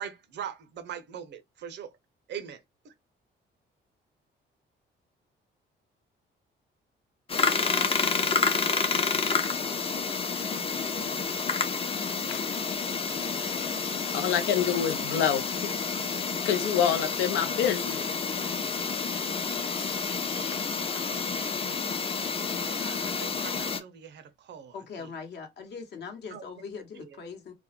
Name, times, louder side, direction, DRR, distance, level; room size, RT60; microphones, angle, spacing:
voice 1, 0.0-1.9 2.3-2.9 22.8-24.7 26.3-26.4 27.0-27.2, right 8 dB, 60° right, 0.5 m, -41 dB
Vintage Hard Drive Read and Idle, 7.3-23.8, left 5 dB, 30° left, 0.5 m, -29 dB
voice 2, 14.1-15.7 16.4-18.0 19.7-20.0 20.3-20.5 20.9-21.0, left 8 dB, 90° left, 0.5 m, -27 dB
voice 3, 24.7-27.5, left 5 dB, 60° left, 0.9 m, -41 dB
2.2 x 2.0 x 2.8 m
cardioid pair, 90°, 20 cm